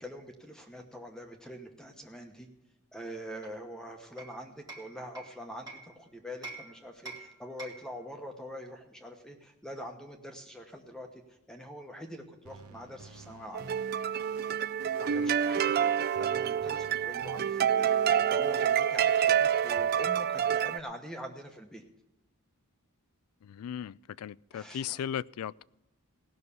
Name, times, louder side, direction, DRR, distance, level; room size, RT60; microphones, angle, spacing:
voice 1, 0.0-2.5 2.9-11.2 11.5-13.8 15.0-17.8 18.3-21.8 24.5-25.0, equal, 5° left, 3 dB, 1.0 m, -44 dB
Hammer, 3.4-5.9 6.4-8.0, right 3 dB, 20° right, 1.6 m, -47 dB
sound 1, 12.5-19.8, right 2 dB, 75° right, 1.0 m, -48 dB
sound 2, 13.5-20.8, right 9 dB, 45° right, 0.3 m, -27 dB
voice 2, 15.0-15.4 23.4-25.6, left 9 dB, 80° left, 21 dB, 0.3 m, -37 dB
17.0 x 6.3 x 6.9 m, 0.95 s
head